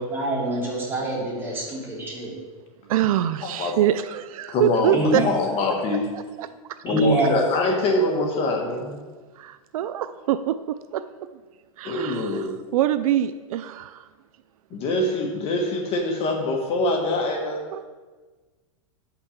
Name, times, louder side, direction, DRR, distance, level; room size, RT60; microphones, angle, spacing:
voice 1, 0.0-2.3 4.9-5.3 6.8-7.4, right 1 dB, 10° right, -6 dB, 3.1 m, -25 dB
voice 2, 2.9-5.2 6.1-6.5 9.4-11.0 11.8-14.0 17.7-17.8, right 12 dB, 70° right, 12 dB, 0.5 m, -25 dB
voice 3, 3.4-3.7 4.5-6.1 6.8-9.0 11.8-12.5 14.7-17.6, left 2 dB, 30° left, 1 dB, 1.3 m, -24 dB
6.3 x 6.0 x 6.9 m, 1.3 s
supercardioid pair, 140°, 18 cm